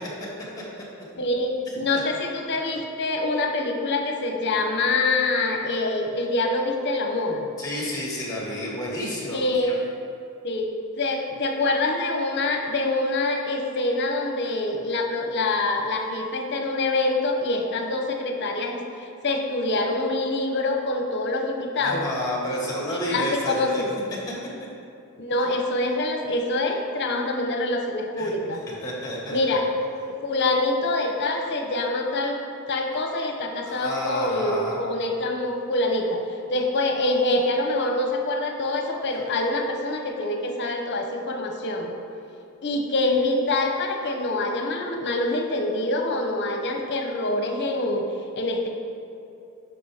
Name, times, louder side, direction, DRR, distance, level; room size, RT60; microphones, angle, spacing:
voice 1, 1.2-7.5 9.3-9.8 10.4-10.7 11.0-22.1 22.9-23.9 25.2-28.6 29.3-29.7 30.1-32.4 32.7-36.2 36.5-41.9 42.6-48.1 48.4-48.7, left 2 dB, 55° left, 3 dB, 0.9 m, -25 dB
voice 2, 7.6-9.4 21.7-23.8 28.2-28.3 28.8-29.6 33.6-34.8, left 1 dB, 15° left, -4 dB, 1.8 m, -30 dB
11.0 x 5.6 x 3.6 m, 2.6 s
head